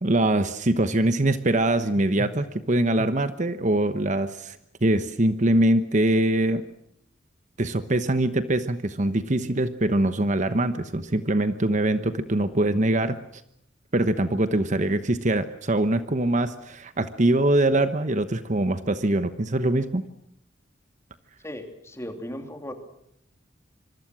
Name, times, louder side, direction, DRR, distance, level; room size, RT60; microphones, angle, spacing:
voice 1, 0.0-6.6 7.6-13.2 13.9-20.0, right 1 dB, 40° right, 11 dB, 1.1 m, -23 dB
voice 2, 21.4-22.7, left 1 dB, 15° left, 5 dB, 3.1 m, -36 dB
26.0 x 24.0 x 6.2 m, 0.75 s
head